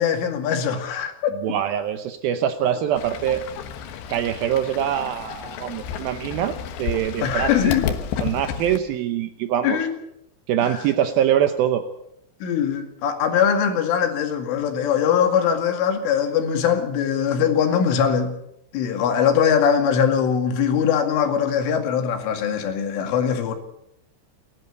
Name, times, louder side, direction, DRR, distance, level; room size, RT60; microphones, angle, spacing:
voice 1, 0.0-1.3 7.2-7.9 9.6-10.0 10.6-10.7 12.4-18.3 18.7-23.6, left 7 dB, 85° left, 4.8 m, -21 dB
voice 2, 1.4-3.4 4.1-7.7 8.2-9.8 10.5-11.8, right 10 dB, 80° right, 2.2 m, -24 dB
Fowl / Bird, 2.9-8.8, left 8 dB, 70° left, 3.3 m, -31 dB
29.5 x 11.0 x 8.2 m
omnidirectional pair, 5.5 m